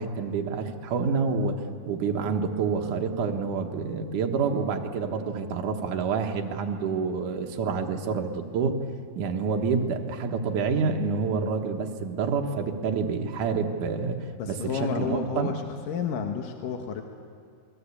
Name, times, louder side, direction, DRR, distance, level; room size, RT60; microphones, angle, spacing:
voice 1, 0.0-1.5 1.8-8.7 9.2-14.2 14.5-15.5, right 5 dB, 60° right, 3 dB, 2.7 m, -28 dB
voice 2, 14.4-17.0, left 6 dB, 65° left, 4 dB, 2.7 m, -31 dB
29.0 x 21.0 x 8.5 m, 2.2 s
omnidirectional pair, 4.5 m